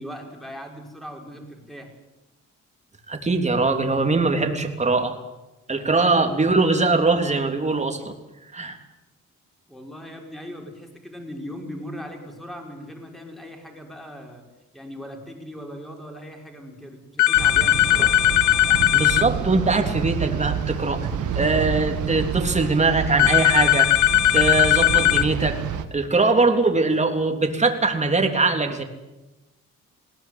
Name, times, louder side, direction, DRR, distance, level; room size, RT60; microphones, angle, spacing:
voice 1, 0.0-1.9 9.7-14.4 14.7-18.2, equal, ahead, 2 dB, 5.8 m, -39 dB
voice 2, 3.1-5.2 5.7-8.1 8.5-8.8 18.9-21.1 21.4-23.9 24.3-25.6 25.9-28.8, right 3 dB, 25° right, 5 dB, 3.5 m, -21 dB
sound 1, 17.2-19.3 23.2-25.3, left 14 dB, 70° left, 0.8 m, -18 dB
sound 2, 17.3-25.8, right 8 dB, 80° right, 2.2 m, -29 dB
21.0 x 18.0 x 9.6 m, 1.0 s
cardioid pair, 90°, 30 cm